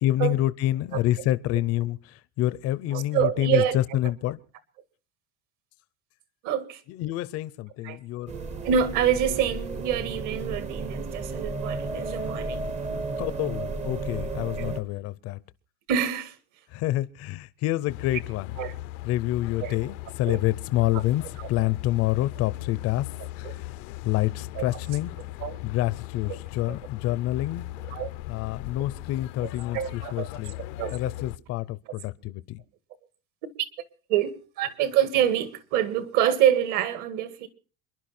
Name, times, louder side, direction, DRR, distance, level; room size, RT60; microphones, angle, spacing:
voice 1, 0.0-4.4 6.9-8.4 13.2-15.4 16.7-18.6 19.0-21.2 21.5-23.1 23.4-23.7 24.0-25.1 25.6-27.6 28.3-30.5 30.9-32.6, left 15 dB, 40° left, 0.7 m, -27 dB
voice 2, 2.9-3.8 6.4-6.8 7.8-8.0 8.6-12.7 14.6-14.8 15.9-16.4 18.6-18.7 19.6-19.8 20.3-20.4 21.4-21.7 23.4-23.6 24.6-24.7 25.4-25.6 26.3-26.4 26.7-26.8 27.9-28.1 29.7-30.3 30.8-31.0 34.1-34.3 34.6-37.5, right 9 dB, 50° right, 2.1 m, -26 dB
sound 1, 8.3-14.8, right 3 dB, 20° right, 0.9 m, -33 dB
sound 2, 17.9-31.4, left 17 dB, 80° left, 0.8 m, -38 dB
28.0 x 11.0 x 4.3 m
cardioid pair, 165°, 38 cm